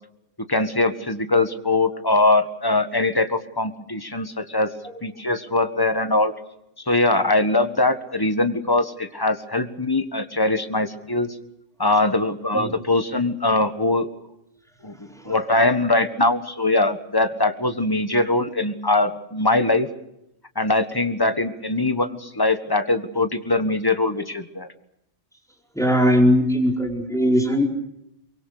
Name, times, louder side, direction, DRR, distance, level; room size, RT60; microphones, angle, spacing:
voice 1, 0.5-4.7 5.0-6.3 6.9-11.3 11.8-14.1 14.8-19.9 20.5-24.7, left 2 dB, 20° left, 9 dB, 1.6 m, -22 dB
voice 2, 14.9-15.4 25.7-27.6, equal, 5° left, 1 dB, 4.6 m, -20 dB
24.0 x 23.5 x 6.7 m, 0.80 s
omnidirectional pair, 1.2 m